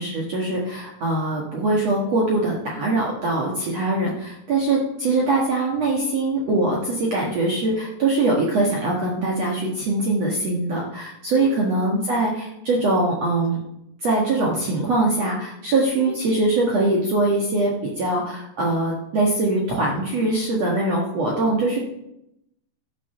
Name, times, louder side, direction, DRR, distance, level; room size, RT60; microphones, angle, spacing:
voice 1, 0.0-13.6 14.0-21.8, right 2 dB, 65° right, -3 dB, 1.6 m, -22 dB
14.0 x 6.8 x 5.6 m, 0.82 s
omnidirectional pair, 5.3 m